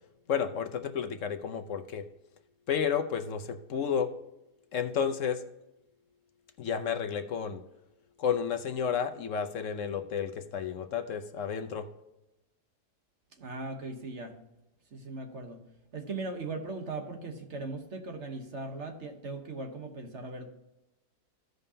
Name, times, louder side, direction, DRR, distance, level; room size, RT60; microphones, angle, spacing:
voice 1, 0.3-2.1 2.7-4.1 4.7-5.4 6.6-7.6 8.2-11.9, left 7 dB, 60° left, 7 dB, 0.9 m, -31 dB
voice 2, 13.4-14.4 14.9-15.6 15.9-20.5, right 3 dB, 45° right, 4 dB, 1.3 m, -39 dB
15.5 x 5.3 x 2.8 m, 0.93 s
omnidirectional pair, 1.8 m